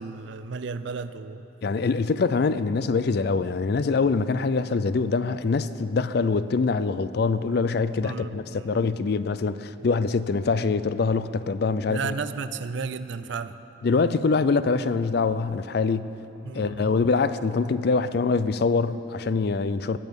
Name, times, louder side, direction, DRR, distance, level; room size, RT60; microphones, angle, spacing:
voice 1, 0.0-1.5 8.0-8.7 11.9-13.6 16.4-16.9, right 5 dB, 65° right, 13 dB, 0.4 m, -33 dB
voice 2, 1.6-12.1 13.8-16.1 16.5-20.0, left 4 dB, 55° left, 14 dB, 0.4 m, -24 dB
20.5 x 7.0 x 5.4 m, 2.9 s
head